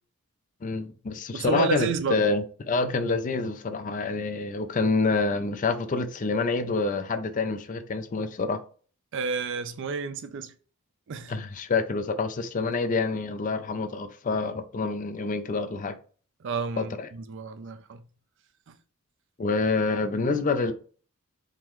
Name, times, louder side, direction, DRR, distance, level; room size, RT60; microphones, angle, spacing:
voice 1, 0.6-8.6 11.3-16.0 16.8-17.1 19.4-20.7, left 3 dB, 35° left, 0.4 m, -27 dB
voice 2, 1.3-2.3 9.1-10.5 11.1-11.3 16.4-18.0 18.7-18.8, right 4 dB, 55° right, 0.4 m, -30 dB
3.7 x 3.0 x 3.0 m
head